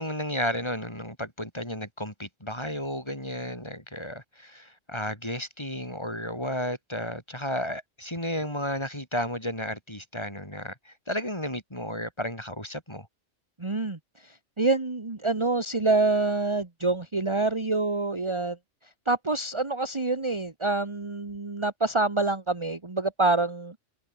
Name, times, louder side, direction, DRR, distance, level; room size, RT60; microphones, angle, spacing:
voice 1, 0.0-13.1, left 1 dB, 20° left, 6.9 m, -33 dB
voice 2, 13.6-18.6 19.1-23.7, right 3 dB, 25° right, 1.6 m, -26 dB
omnidirectional pair, 1.2 m